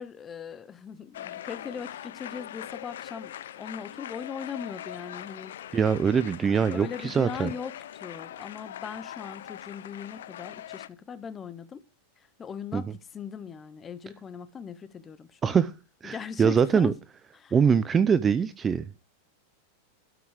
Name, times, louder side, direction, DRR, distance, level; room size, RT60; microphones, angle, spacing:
voice 1, 0.0-5.5 6.6-11.8 12.2-15.6 16.0-16.9 17.3-17.5, left 6 dB, 15° left, 0.8 m, -39 dB
sound 1, 1.1-10.9, left 11 dB, 85° left, 0.6 m, -42 dB
voice 2, 5.7-7.5 12.7-12.8 15.4-15.7 16.0-16.9 17.5-18.8, right 6 dB, 15° right, 0.5 m, -23 dB
12.5 x 6.1 x 4.8 m
supercardioid pair, 165°, 0 cm